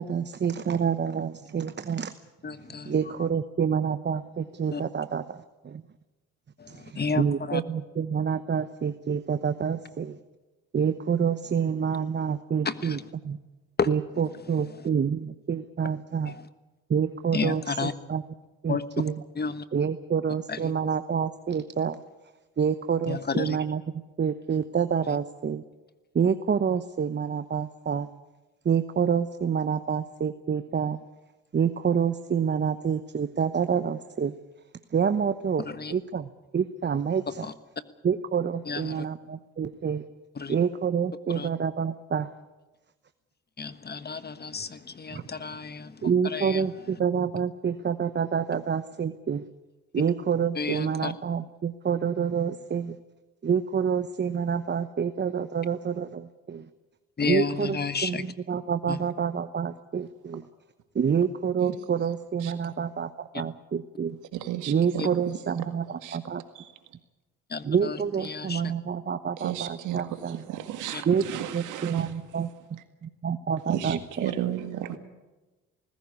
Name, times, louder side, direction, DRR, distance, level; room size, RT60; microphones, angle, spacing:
voice 1, 0.0-2.1 2.8-5.8 6.7-10.2 10.7-13.4 13.9-16.3 16.9-18.2 18.6-19.1 19.7-22.0 22.6-25.6 26.1-28.1 28.6-31.0 31.5-34.3 34.9-35.6 35.9-37.5 38.0-40.0 40.5-42.3 45.1-45.2 46.0-49.4 49.9-53.0 53.4-56.6 57.2-60.4 60.9-64.2 64.7-66.4 67.6-70.4 71.1-71.3 71.5-72.5 73.0-74.3, right 7 dB, 35° right, 11 dB, 1.0 m, -27 dB
voice 2, 2.4-2.9 4.7-4.8 6.6-7.6 12.6-13.0 13.8-13.9 16.3-16.5 17.3-17.9 18.7-19.0 19.4-19.6 20.5-20.7 23.1-23.6 25.1-25.2 35.6-35.9 37.4-37.5 38.6-39.0 40.3-40.5 41.3-41.5 43.6-46.6 50.5-51.1 57.2-58.2 58.9-59.0 65.0-65.1 67.5-68.7 70.9-71.0, left 5 dB, 30° left, 13 dB, 1.4 m, -32 dB
voice 3, 64.3-65.1 65.6-65.7 66.0-66.2 66.5-66.7 69.4-72.1 73.7-75.0, right 12 dB, 75° right, 8 dB, 2.0 m, -33 dB
19.5 x 16.0 x 9.7 m, 1.1 s
supercardioid pair, 60°, 31 cm